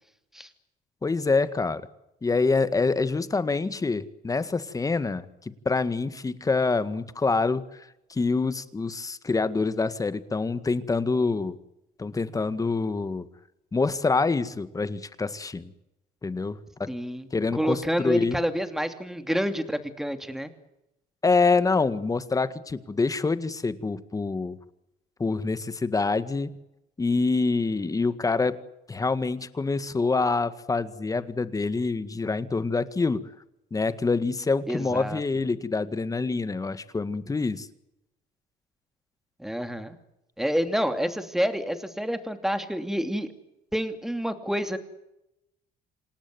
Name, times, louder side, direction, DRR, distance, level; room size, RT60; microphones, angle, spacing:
voice 1, 1.0-1.8 2.2-11.6 12.0-13.3 13.7-15.7 16.2-16.9 17.3-18.4 21.2-24.6 25.2-26.5 27.0-28.6 28.9-33.2 33.7-37.7, left 4 dB, 20° left, 13 dB, 1.8 m, -26 dB
voice 2, 16.9-17.3 17.5-20.5 34.7-35.2 39.4-40.0 40.4-43.3 43.7-44.8, equal, ahead, 8 dB, 2.9 m, -28 dB
27.5 x 18.0 x 9.4 m, 0.88 s
cardioid pair, 110°, 17 cm